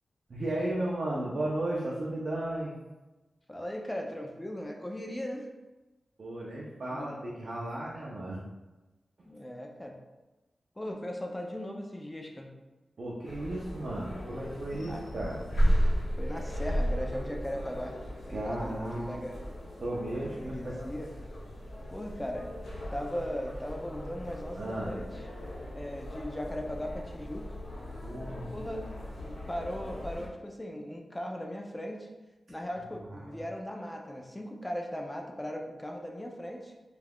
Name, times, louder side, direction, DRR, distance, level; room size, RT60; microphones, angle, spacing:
voice 1, 0.3-2.7 6.2-8.4 13.0-15.4 18.3-19.2 19.8-20.8 24.6-25.0 28.0-28.5 33.1-33.3, right 1 dB, 55° right, -5 dB, 0.4 m, -34 dB
voice 2, 3.5-5.5 6.9-7.2 9.3-10.0 10.8-12.5 14.7-15.0 16.2-18.0 18.2-19.4 20.4-21.1 21.9-22.5 22.9-25.3 25.7-27.6 28.5-28.9 29.2-32.1 32.5-36.7, equal, 10° left, 2 dB, 0.3 m, -38 dB
sound 1, 13.2-30.3, equal, 65° left, 0.9 m, -35 dB
2.3 x 2.2 x 3.4 m, 1.1 s
wide cardioid pair, 135°, 0 cm